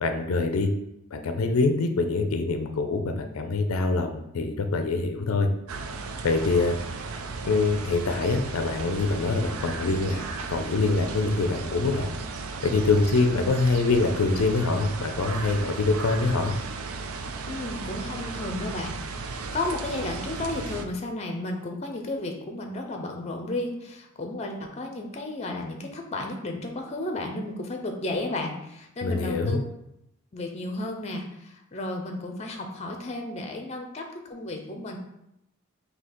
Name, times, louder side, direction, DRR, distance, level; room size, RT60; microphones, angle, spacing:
voice 1, 0.0-0.7 1.1-5.5 6.2-6.8 7.4-10.2 10.5-12.1 12.6-16.6 29.0-29.6, left 3 dB, 80° left, 6 dB, 0.5 m, -24 dB
sound 1, 5.7-20.8, right 4 dB, 80° right, 0.4 m, -35 dB
voice 2, 17.5-29.6 30.3-35.0, left 2 dB, 30° left, 3 dB, 0.5 m, -33 dB
3.8 x 2.8 x 4.3 m, 0.82 s
head